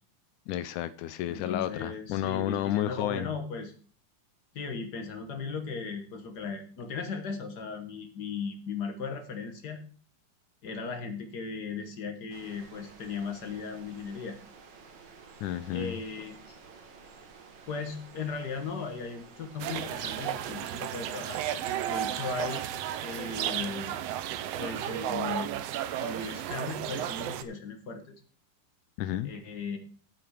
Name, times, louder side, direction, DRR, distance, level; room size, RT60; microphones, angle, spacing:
voice 1, 0.5-3.3 15.4-16.0 29.0-29.3, left 13 dB, 80° left, 14 dB, 1.9 m, -31 dB
voice 2, 1.3-3.7 4.5-9.8 10.6-14.4 15.7-16.5 17.7-21.4 21.9-22.7 23.0-24.0 24.6-25.5 26.0-28.2 29.2-29.8, left 5 dB, 60° left, 5 dB, 1.0 m, -37 dB
sound 1, 12.3-20.7, right 5 dB, 60° right, 1.2 m, -52 dB
sound 2, 19.6-27.4, right 11 dB, 85° right, 1.4 m, -33 dB
14.0 x 6.0 x 4.8 m, 0.43 s
omnidirectional pair, 3.7 m